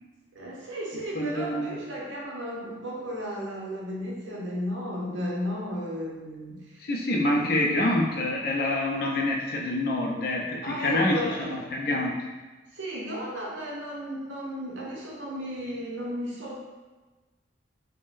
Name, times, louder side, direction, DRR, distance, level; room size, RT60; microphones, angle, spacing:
voice 1, 0.3-6.8 7.3-7.9 10.6-11.7 12.7-16.5, equal, 80° right, -4 dB, 0.8 m, -34 dB
voice 2, 1.1-1.8 6.8-12.2, left 1 dB, 50° left, -1 dB, 0.4 m, -26 dB
3.5 x 2.1 x 2.5 m, 1.3 s
head